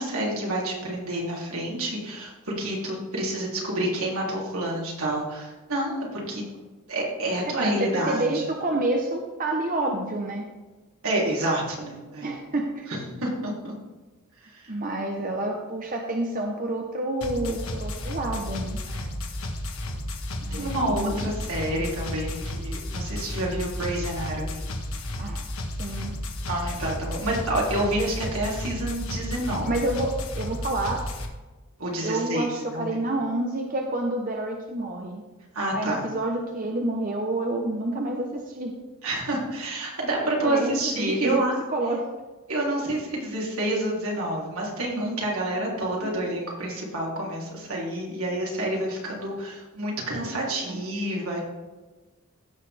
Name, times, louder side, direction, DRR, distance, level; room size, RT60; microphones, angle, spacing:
voice 1, 0.0-6.4 6.9-8.4 11.0-12.3 13.2-13.7 14.4-14.7 15.1-15.2 18.9-19.2 20.5-24.6 26.5-29.7 31.8-32.5 32.7-32.9 35.5-36.0 39.0-41.5 42.5-51.4, right 1 dB, 80° right, -3 dB, 3.2 m, -28 dB
voice 2, 7.5-10.5 12.2-12.9 14.7-18.8 20.4-21.4 25.2-25.4 25.8-26.2 29.6-31.0 32.0-35.2 35.7-38.7 40.2-42.1 46.0-46.3 50.7-50.8, right 2 dB, 40° right, 1 dB, 1.0 m, -29 dB
sound 1, 17.2-31.3, left 1 dB, 75° left, 1.4 m, -33 dB
15.5 x 6.5 x 3.4 m, 1.2 s
head